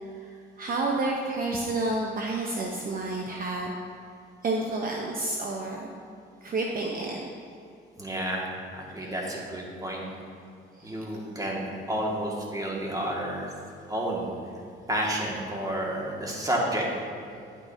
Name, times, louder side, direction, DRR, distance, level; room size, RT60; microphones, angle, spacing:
voice 1, 0.6-3.7 4.4-5.9 6.4-7.2 9.0-9.1 10.8-11.0, right 2 dB, 45° right, 0 dB, 0.9 m, -30 dB
voice 2, 8.0-8.5 8.7-10.0 10.8-13.5 13.9-14.3 14.9-16.9, right 1 dB, 15° right, -3 dB, 2.0 m, -30 dB
10.5 x 9.1 x 2.8 m, 2.5 s
cardioid pair, 90°, 20 cm